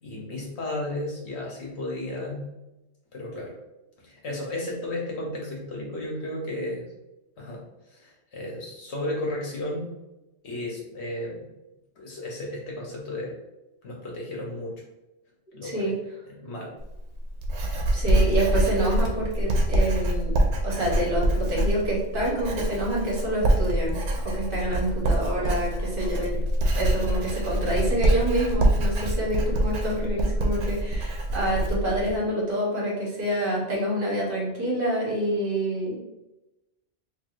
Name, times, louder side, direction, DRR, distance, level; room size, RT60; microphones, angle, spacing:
voice 1, 0.0-2.5 3.1-3.5 4.0-6.8 7.4-7.6 7.9-9.9 10.4-11.4 12.0-13.3 13.8-14.7 15.5-15.9 16.3-16.7, left 1 dB, 65° left, -2 dB, 1.2 m, -33 dB
voice 2, 15.6-15.9 17.9-24.0 24.2-26.4 26.8-36.0, right 1 dB, 45° right, -4 dB, 1.1 m, -27 dB
Writing, 16.8-32.2, right 1 dB, 70° right, 0.9 m, -25 dB
4.6 x 2.7 x 2.5 m, 0.97 s
omnidirectional pair, 1.3 m